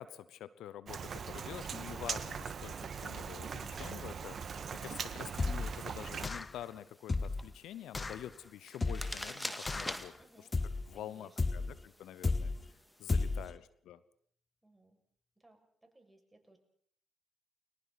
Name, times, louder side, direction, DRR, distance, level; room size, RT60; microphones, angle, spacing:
voice 1, 0.0-4.4 4.8-10.5 10.9-12.5 13.0-14.0, left 11 dB, 70° left, 16 dB, 0.8 m, -47 dB
Rain, 0.9-6.3, right 6 dB, 55° right, 1.6 m, -41 dB
sound 1, 5.4-5.8 6.2-6.6 7.1-7.5 7.9-8.2 8.8-9.2 9.7-10.1 10.5-10.9 11.4-11.8 12.2-12.7 13.1-13.5, left 3 dB, 35° left, 1.0 m, -33 dB
sound 2, 6.0-13.4, left 1 dB, 5° left, 2.3 m, -47 dB
voice 2, 10.2-10.5 10.9-11.6 13.2-13.5 14.6-15.0 15.4-16.6, right 2 dB, 15° right, 4 dB, 6.6 m, -64 dB
29.5 x 23.5 x 4.2 m, 0.62 s
hypercardioid pair, 45°, 0 cm